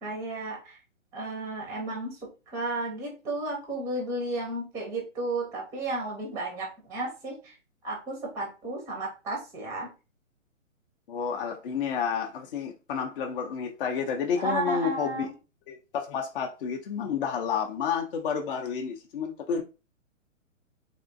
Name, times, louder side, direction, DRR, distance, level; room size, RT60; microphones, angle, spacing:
voice 1, 0.0-0.8 1.1-2.2 2.5-7.5 7.8-9.9 14.4-15.3, right 2 dB, 10° right, 0.5 m, -33 dB
voice 2, 11.1-15.3 15.7-19.6, left 7 dB, 45° left, 0.5 m, -30 dB
3.5 x 2.4 x 2.5 m
hypercardioid pair, 130°, 40 cm